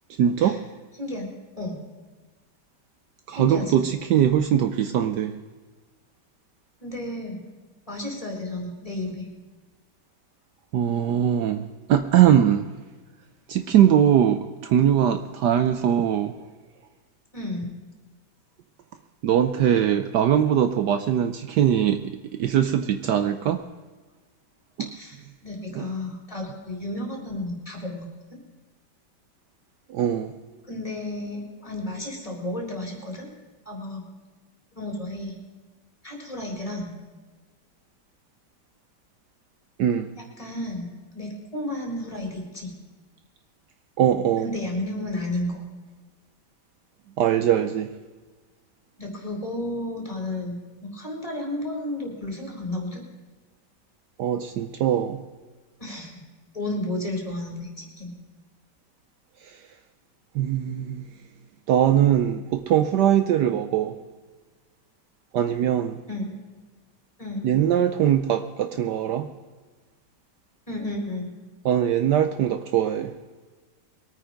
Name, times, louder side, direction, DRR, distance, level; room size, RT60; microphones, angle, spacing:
voice 1, 0.2-0.6 3.3-5.4 10.7-12.6 13.5-16.3 19.2-23.6 25.7-25.9 29.9-30.3 39.8-40.1 44.0-44.5 47.2-47.9 54.2-55.2 59.4-59.6 60.3-61.1 61.7-64.0 65.3-66.0 67.4-69.3 71.6-73.1, right 10 dB, 70° right, 9 dB, 1.2 m, -21 dB
voice 2, 1.0-1.8 3.4-3.8 6.8-7.4 7.9-9.3 17.3-17.7 24.8-28.4 30.7-33.3 33.7-34.0 34.8-35.3 36.0-36.9 40.2-42.7 44.4-45.6 49.0-53.0 55.8-56.2 56.5-58.1 66.1-66.3 67.2-67.5 70.7-71.3, left 1 dB, 15° left, 0 dB, 3.8 m, -32 dB
22.0 x 9.1 x 5.2 m, 1.4 s
omnidirectional pair, 2.1 m